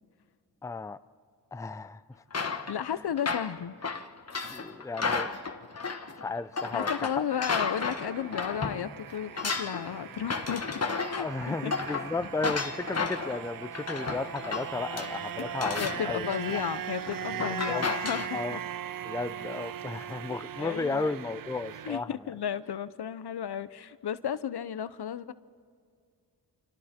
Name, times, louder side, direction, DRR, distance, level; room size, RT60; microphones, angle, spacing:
voice 1, 0.6-1.0 1.5-2.0 4.5-5.3 6.2-7.1 11.2-16.2 17.7-17.9 18.3-18.6 19.0-22.1, left 3 dB, 10° left, 0.5 m, -34 dB
sound 1, 2.3-8.9 9.1-18.3, left 4 dB, 35° left, 1.4 m, -33 dB
voice 2, 2.7-3.7 6.7-10.8 11.1-11.7 15.4-15.5 15.8-18.6 20.6-21.1 21.9-25.3, left 9 dB, 70° left, 0.9 m, -34 dB
sound 2, 7.3-22.0, right 10 dB, 55° right, 0.6 m, -39 dB
29.5 x 26.5 x 4.4 m
cardioid pair, 75°, 41 cm